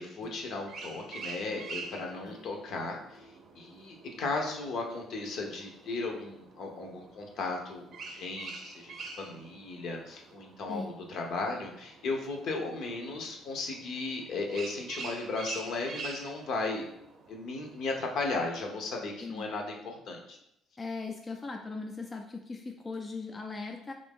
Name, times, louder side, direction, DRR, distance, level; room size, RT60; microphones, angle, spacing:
voice 1, 0.0-16.9 17.3-20.4, left 3 dB, 65° left, 1 dB, 0.7 m, -36 dB
sound 1, 0.6-18.3, right 4 dB, 55° right, 0.5 m, -47 dB
voice 2, 20.8-23.9, left 3 dB, 25° left, 3 dB, 0.3 m, -39 dB
2.9 x 2.6 x 3.5 m, 0.79 s
cardioid pair, 90°, 0 cm